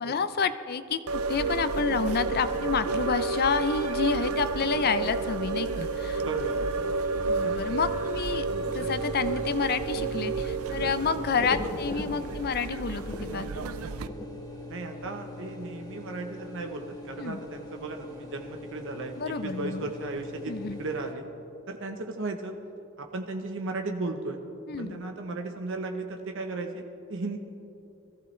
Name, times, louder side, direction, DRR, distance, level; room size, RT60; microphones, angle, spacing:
voice 1, 0.0-6.2 7.3-13.6 17.2-17.4 19.2-19.9 20.5-20.8 24.7-25.0, left 5 dB, 50° left, 12 dB, 0.5 m, -29 dB
sound 1, 1.1-14.1, right 4 dB, 85° right, 0.5 m, -31 dB
sound 2, 2.1-21.1, left 1 dB, 20° left, 1.3 m, -41 dB
voice 2, 6.2-6.6 14.7-21.3 21.7-22.6 23.0-24.4 24.8-27.4, right 3 dB, 65° right, 4 dB, 1.0 m, -35 dB
21.0 x 14.5 x 3.3 m, 2.8 s
head